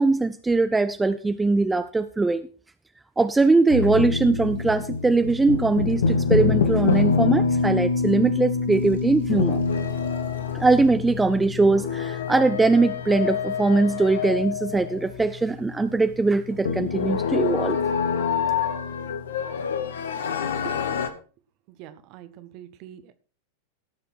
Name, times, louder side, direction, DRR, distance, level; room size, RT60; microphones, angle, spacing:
voice 1, 0.0-2.5 3.2-9.6 10.5-17.8, right 3 dB, 10° right, 12 dB, 0.6 m, -21 dB
sound 1, 3.7-21.1, left 5 dB, 65° left, 1.5 m, -26 dB
sound 2, 8.7-12.8, left 1 dB, 70° right, 4.9 m, -49 dB
voice 2, 21.8-23.1, right 12 dB, 40° right, 12 dB, 1.3 m, -43 dB
17.5 x 7.1 x 4.6 m, 0.38 s
figure-of-eight pair, 90°, 0 cm